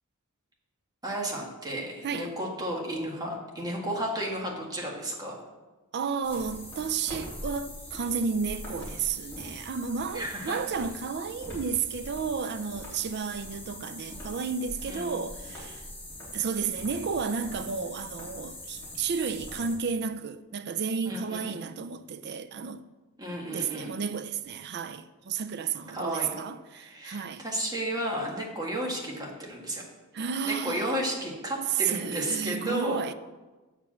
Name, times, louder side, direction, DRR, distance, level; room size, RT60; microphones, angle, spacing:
voice 1, 1.0-5.4 10.1-10.6 14.9-15.2 21.1-21.5 23.2-24.0 25.9-26.3 26.7-29.8 30.4-33.0, right 1 dB, 20° right, 1.7 m, -33 dB
voice 2, 5.9-15.9 16.3-22.9 23.5-27.4 30.1-31.0 31.8-33.1, right 5 dB, 50° right, 0.4 m, -32 dB
sound 1, 6.2-19.8, left 1 dB, 10° left, 3.0 m, -42 dB
8.1 x 5.0 x 7.3 m
head